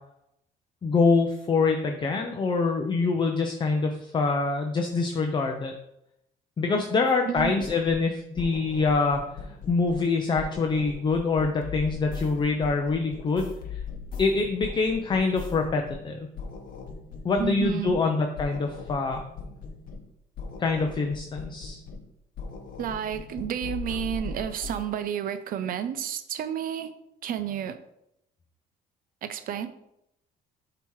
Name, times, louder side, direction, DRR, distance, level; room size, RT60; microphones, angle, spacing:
voice 1, 0.8-5.7 6.6-9.2 9.7-13.8 14.2-16.2 17.2-19.2 20.6-21.8, left 4 dB, 25° left, 4 dB, 0.6 m, -25 dB
sound 1, 7.3-8.1 8.4-10.1 10.4-16.1 16.4-18.1 18.4-20.1 20.4-22.1 22.4-24.8, left 4 dB, 55° left, 0.9 m, -39 dB
voice 2, 7.3-7.6 17.1-18.0 22.8-26.9 27.2-27.8 29.2-29.7, right 9 dB, 55° right, 11 dB, 0.6 m, -31 dB
6.9 x 2.9 x 4.7 m, 0.81 s
cardioid pair, 110°, 17 cm